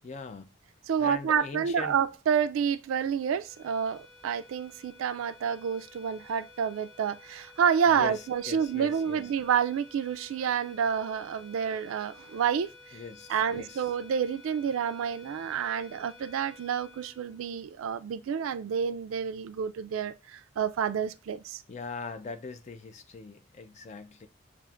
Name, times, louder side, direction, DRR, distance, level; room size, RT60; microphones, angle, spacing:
voice 1, 0.0-0.5 1.0-2.0 7.9-9.3 12.9-13.9 21.7-24.3, left 4 dB, 35° left, 0.4 m, -41 dB
voice 2, 0.9-13.0 13.3-21.6, right 7 dB, 90° right, 0.3 m, -29 dB
sound 1, 3.4-18.0, left 3 dB, 55° left, 1.4 m, -53 dB
6.9 x 2.5 x 2.4 m
head